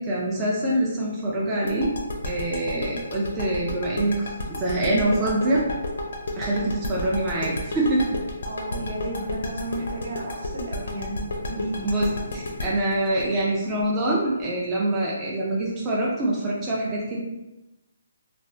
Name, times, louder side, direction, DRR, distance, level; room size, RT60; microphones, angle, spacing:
voice 1, 0.0-1.9 2.2-4.3 4.6-5.6 6.4-8.0 11.8-17.2, right 1 dB, 10° right, -6 dB, 0.3 m, -25 dB
sound 1, 1.7-14.4, left 2 dB, 60° left, 0.5 m, -31 dB
voice 2, 8.5-11.9, right 1 dB, 65° right, -1 dB, 0.8 m, -33 dB
3.1 x 2.0 x 2.6 m, 1.0 s
hypercardioid pair, 175°, 0 cm